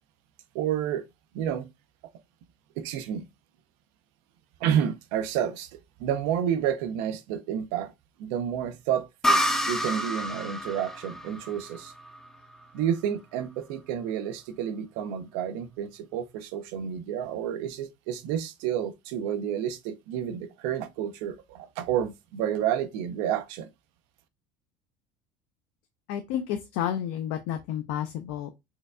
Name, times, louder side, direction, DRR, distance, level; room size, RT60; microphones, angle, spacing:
voice 1, 0.5-1.0 1.3-1.7 2.8-3.2 4.6-7.9 8.2-9.4 9.7-11.9 12.7-23.7, right 9 dB, 80° right, 0.5 m, -30 dB
sound 1, 9.2-12.8, equal, 5° left, 0.4 m, -29 dB
voice 2, 26.1-28.5, left 10 dB, 75° left, 0.5 m, -31 dB
4.4 x 2.2 x 2.4 m
supercardioid pair, 120°, 14 cm